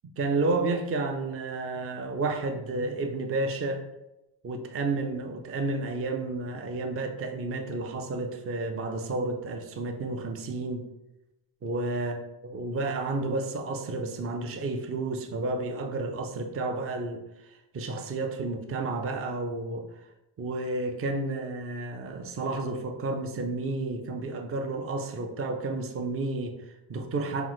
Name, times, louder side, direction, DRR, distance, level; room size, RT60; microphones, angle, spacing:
voice 1, 0.2-3.9 4.4-10.8 11.6-19.8 20.4-27.5, right 3 dB, 30° right, 5 dB, 0.4 m, -31 dB
5.7 x 2.1 x 3.1 m, 0.92 s
cardioid pair, 100°, 47 cm